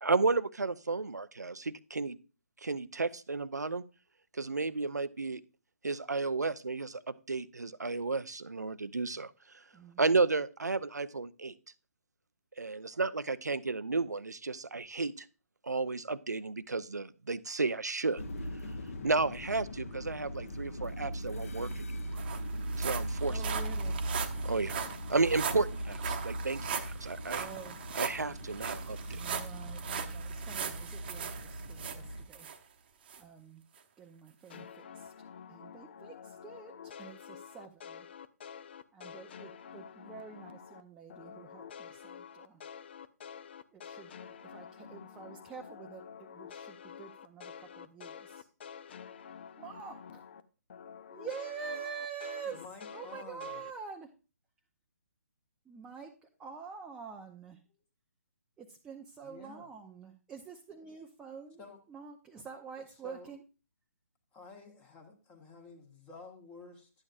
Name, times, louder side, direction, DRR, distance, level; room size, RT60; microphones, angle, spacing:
voice 1, 0.0-2.2 2.6-3.8 4.4-5.4 5.8-9.3 10.0-11.5 12.6-15.3 15.6-18.2 19.0-21.8 22.8-23.4 24.4-24.7 25.1-27.4 28.0-29.2, right 3 dB, 80° right, 15 dB, 0.5 m, -32 dB
voice 2, 9.7-10.1 23.3-24.0 27.3-27.8 29.1-32.5 33.2-33.6 34.0-35.1 35.5-38.1 38.9-42.6 43.7-48.5 49.6-50.3 51.1-52.6 52.9-54.1 55.6-57.6 58.6-63.4, right 6 dB, 10° right, 1 dB, 0.5 m, -47 dB
sound 1, 18.2-32.2, right 1 dB, 55° left, 1.2 m, -39 dB
sound 2, 21.4-21.5 21.7-32.6 33.1-33.2 33.8-33.9, right 7 dB, 35° right, 0.9 m, -40 dB
sound 3, 34.5-40.8 41.1-50.4 50.7-53.7, left 7 dB, 40° left, 0.6 m, -48 dB
voice 3, 52.5-53.6 59.2-59.7 61.6-61.8 63.0-63.3 64.3-66.9, left 4 dB, 15° left, 4 dB, 1.2 m, -50 dB
11.5 x 8.8 x 2.5 m, 0.33 s
figure-of-eight pair, 135°, 9 cm